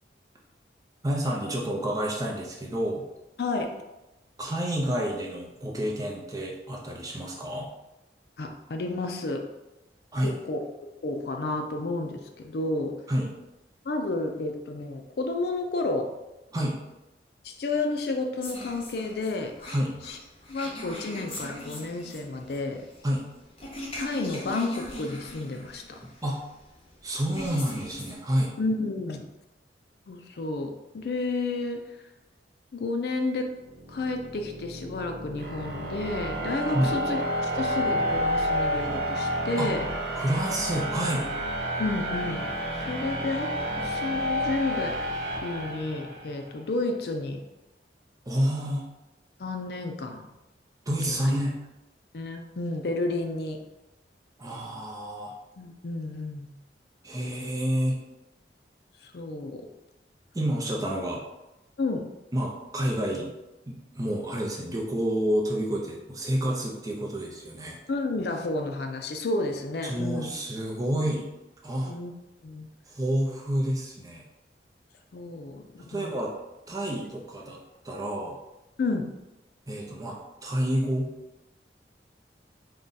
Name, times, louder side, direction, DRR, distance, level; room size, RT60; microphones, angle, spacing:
voice 1, 1.0-3.0 4.4-7.7 10.1-10.3 13.1-13.3 16.5-16.8 19.7-20.1 23.0-23.3 26.2-26.4 27.0-28.5 36.7-36.9 39.6-39.7 40.1-41.3 48.3-48.8 50.9-51.6 54.4-55.3 57.0-58.0 60.3-61.2 62.3-63.3 63.7-67.8 69.8-71.3 71.6-71.9 72.9-74.2 75.8-76.3 76.7-78.4 79.7-81.1, equal, 20° right, -2 dB, 0.5 m, -29 dB
voice 2, 3.4-3.8 8.4-9.4 10.2-13.0 13.8-16.1 17.4-19.5 20.1-20.2 20.5-22.9 24.0-26.0 28.6-29.3 30.1-31.9 32.7-33.5 33.9-39.9 41.8-45.0 45.4-47.4 49.4-50.2 51.0-51.3 52.1-53.6 55.6-56.5 59.0-59.6 61.8-62.0 67.9-70.3 71.8-72.1 72.4-72.7 75.1-76.1 78.8-79.1, left 2 dB, 65° left, 4 dB, 0.4 m, -31 dB
sound 1, 18.4-28.2, left 1 dB, 30° left, 0.7 m, -41 dB
sound 2, 33.5-46.4, equal, 60° right, 0.6 m, -30 dB
3.7 x 2.3 x 3.9 m, 0.98 s
head